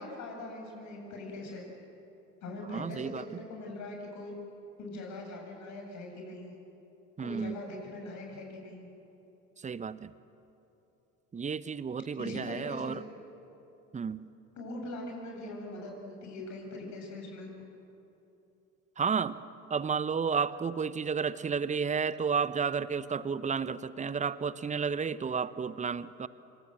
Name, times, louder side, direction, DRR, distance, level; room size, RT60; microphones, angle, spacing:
voice 1, 0.0-1.6 2.4-4.3 4.8-6.5 7.2-8.9 12.2-13.0 14.6-17.5, left 2 dB, 45° left, 1 dB, 7.9 m, -41 dB
voice 2, 2.7-3.2 7.2-7.6 9.6-10.1 11.3-13.0 13.9-14.3 19.0-19.4 19.7-26.3, right 6 dB, 20° right, 17 dB, 1.0 m, -32 dB
28.5 x 25.0 x 7.7 m, 2.9 s
figure-of-eight pair, 60°, 38 cm